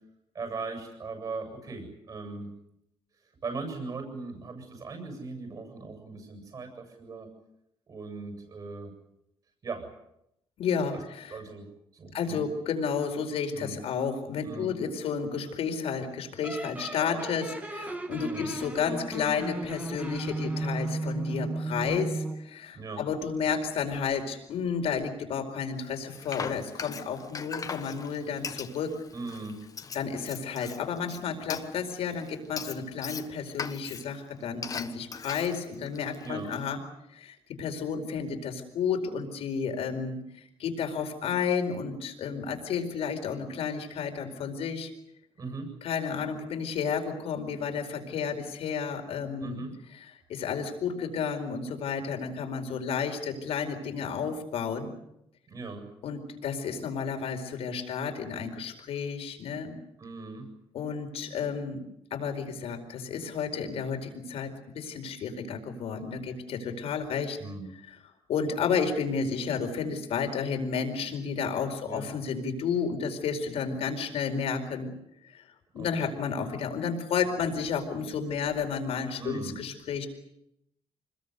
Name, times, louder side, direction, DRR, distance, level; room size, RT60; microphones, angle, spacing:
voice 1, 0.3-2.5 3.4-7.3 7.9-8.9 9.6-9.9 10.9-11.0 11.3-11.7 11.9-12.4 13.5-13.8 14.4-14.7 18.1-18.5 22.7-23.0 29.1-29.6 36.2-36.5 45.4-45.7 49.4-49.7 55.5-55.9 60.0-60.5 67.4-67.7 71.8-72.1 75.8-76.1 79.2-79.5, right 3 dB, 40° right, 4 dB, 7.5 m, -39 dB
voice 2, 10.6-11.4 12.1-28.9 29.9-36.8 37.1-44.9 45.8-49.6 49.9-54.9 56.0-59.7 60.7-61.8 62.1-67.4 67.9-68.0 68.3-74.9 75.2-75.4 75.7-80.1, left 6 dB, 75° left, 5 dB, 4.6 m, -32 dB
sound 1, 16.4-22.5, right 2 dB, 15° right, 2.2 m, -34 dB
Frying (food), 25.8-36.7, left 5 dB, 35° left, 1.4 m, -40 dB
26.0 x 21.0 x 8.2 m, 0.80 s
cardioid pair, 145°, 10 cm